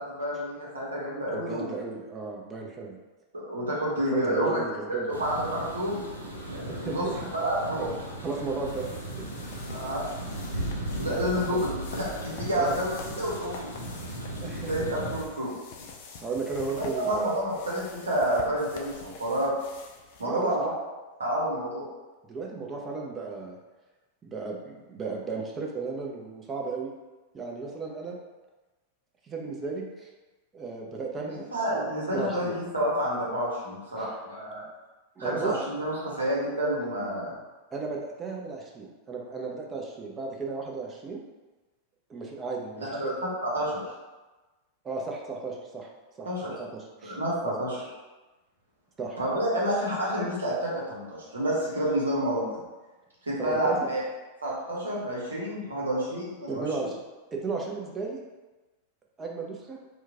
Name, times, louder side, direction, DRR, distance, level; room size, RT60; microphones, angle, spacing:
voice 1, 0.0-1.7 3.3-4.6 5.1-6.0 6.5-7.1 7.3-7.9 9.7-10.1 11.0-13.7 14.6-15.5 17.0-19.5 20.2-20.7 21.2-21.9 31.5-34.6 35.2-37.3 42.7-43.8 46.2-46.5 47.0-47.7 49.2-52.5 53.2-54.0 54.4-56.9, equal, 75° right, -5 dB, 1.0 m, -29 dB
voice 2, 1.3-3.0 4.1-5.1 6.7-7.2 7.8-7.9 8.2-8.9 9.2-9.3 10.6-10.7 11.1-11.6 12.5-12.8 14.4-14.9 16.2-17.3 20.2-20.7 22.3-23.6 24.2-26.9 27.3-28.2 29.2-30.1 30.5-31.5 31.7-31.8 32.1-32.5 34.0-34.1 35.2-35.5 37.7-41.2 42.1-43.1 44.8-45.9 46.2-46.3 46.6-47.2 47.5-47.6 49.0-49.2 53.4-53.9 56.5-57.0 57.3-58.2 59.2-59.8, right 4 dB, 20° right, -1 dB, 0.6 m, -34 dB
sound 1, 5.1-15.2, right 1 dB, 90° right, 0.5 m, -37 dB
sound 2, 8.6-20.2, left 5 dB, 50° left, 0.4 m, -46 dB
3.1 x 2.3 x 3.4 m, 1.2 s
figure-of-eight pair, 90°, 0 cm